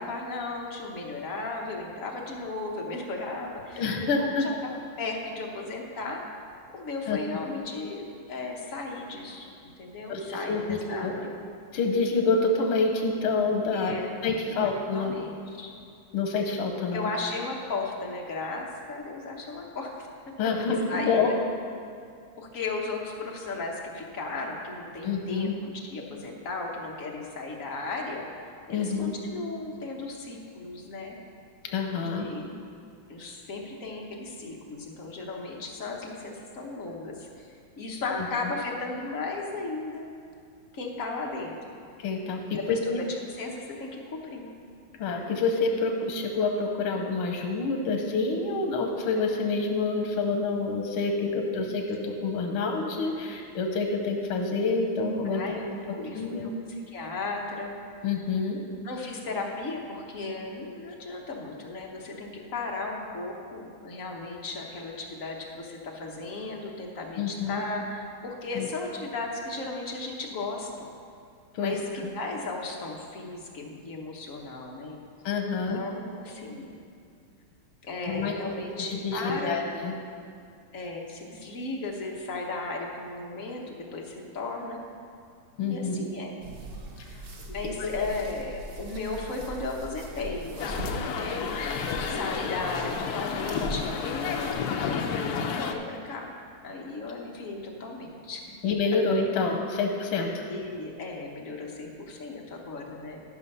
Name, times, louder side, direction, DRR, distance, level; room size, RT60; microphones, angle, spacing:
voice 1, 0.0-3.8 4.2-6.2 6.7-11.3 13.7-15.7 16.9-20.1 20.6-21.2 22.4-28.3 28.7-31.2 31.9-32.5 33.1-37.5 37.8-40.1 40.7-41.6 42.5-43.1 43.3-44.5 55.2-58.0 58.8-70.9 71.6-75.0 75.7-76.7 77.8-79.6 80.7-84.8 85.6-86.3 87.5-91.5 92.1-96.3 96.6-98.4 100.5-103.2, left 3 dB, 45° left, -1 dB, 1.3 m, -36 dB
voice 2, 3.8-4.5 7.1-7.2 10.1-11.1 11.7-13.9 14.2-15.2 16.1-17.1 20.4-21.3 25.0-25.5 28.7-29.1 31.6-32.3 38.1-38.3 42.0-43.0 45.0-55.6 56.1-56.5 58.0-58.6 67.2-67.6 68.6-68.7 71.5-72.1 75.3-75.8 78.1-78.3 78.9-79.9 85.6-86.0 87.8-87.9 98.6-100.5, left 4 dB, 90° left, 3 dB, 1.8 m, -27 dB
sound 1, 86.4-94.5, right 1 dB, 60° right, 0.5 m, -41 dB
sound 2, 90.6-95.7, left 6 dB, 70° left, 0.9 m, -31 dB
12.5 x 5.7 x 5.5 m, 2.4 s
omnidirectional pair, 2.3 m